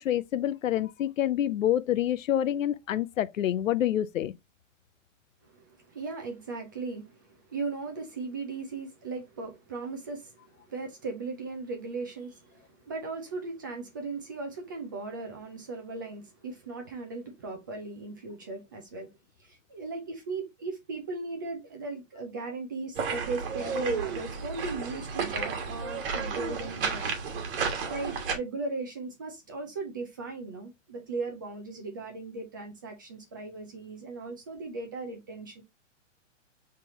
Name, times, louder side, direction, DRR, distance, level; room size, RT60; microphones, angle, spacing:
voice 1, 0.0-4.3, left 11 dB, 85° left, 0.6 m, -27 dB
voice 2, 5.4-19.1 19.4-27.1 27.9-35.6, right 3 dB, 15° right, 0.4 m, -38 dB
sound 1, 22.9-28.4, right 5 dB, 45° right, 1.4 m, -32 dB
5.4 x 3.3 x 3.0 m
hypercardioid pair, 155°, 39 cm